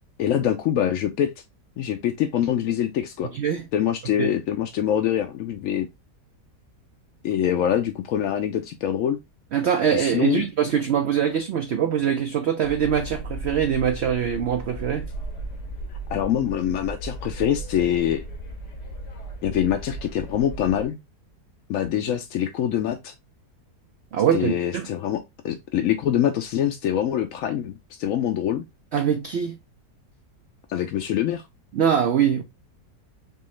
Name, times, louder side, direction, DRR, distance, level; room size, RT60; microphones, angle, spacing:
voice 1, 0.2-1.3 1.8-3.3 3.7-5.9 7.2-9.2 9.9-10.4 16.1-18.2 19.4-21.0 21.7-23.1 24.3-28.6 30.7-31.4, left 10 dB, 70° left, 0.8 m, -24 dB
voice 2, 3.2-3.6 4.2-4.3 9.5-15.1 24.1-24.9 28.9-29.6 31.7-32.4, right 8 dB, 70° right, 0.6 m, -23 dB
sound 1, 12.6-20.9, right 2 dB, 85° left, 1.8 m, -36 dB
4.5 x 3.0 x 3.1 m
omnidirectional pair, 1.7 m